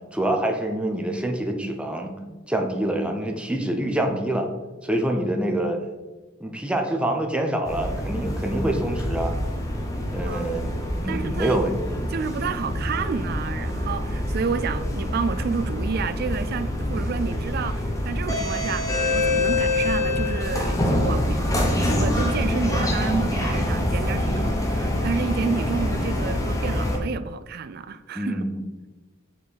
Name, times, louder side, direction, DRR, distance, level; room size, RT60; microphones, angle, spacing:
voice 1, 0.1-2.2 2.5-4.5 4.8-5.8 6.4-9.3 10.1-10.7 11.0-12.0 16.8-17.2 28.1-28.6, right 1 dB, 5° right, 0.7 m, -26 dB
sound 1, 7.7-27.0, left 1 dB, 15° left, 0.9 m, -25 dB
voice 2, 10.2-10.7 11.1-11.6 12.1-28.4, right 5 dB, 50° right, 0.4 m, -30 dB
5.8 x 4.7 x 4.1 m
head